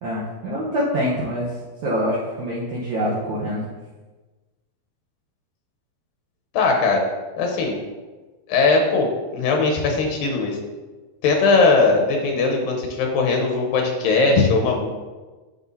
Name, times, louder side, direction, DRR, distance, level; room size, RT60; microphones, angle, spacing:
voice 1, 0.0-1.5 1.8-3.6, equal, 65° right, -6 dB, 2.1 m, -25 dB
voice 2, 6.5-7.0 7.4-7.8 8.5-10.6 11.2-14.9, left 3 dB, 85° left, 1 dB, 2.7 m, -19 dB
9.5 x 6.9 x 2.8 m, 1.3 s
omnidirectional pair, 4.1 m